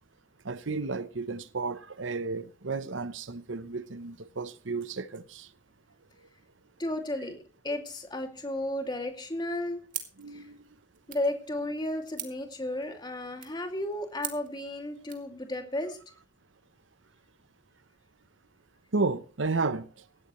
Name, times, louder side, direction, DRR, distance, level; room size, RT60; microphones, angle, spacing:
voice 1, 0.4-5.5 10.2-10.6 18.9-19.9, right 3 dB, 85° right, 0.9 m, -32 dB
voice 2, 6.8-7.4 7.6-9.8 10.3-10.5 11.1-16.0, left 1 dB, 25° left, 2.5 m, -33 dB
sound 1, 9.9-15.3, right 11 dB, 45° right, 2.4 m, -44 dB
17.5 x 13.5 x 3.2 m
head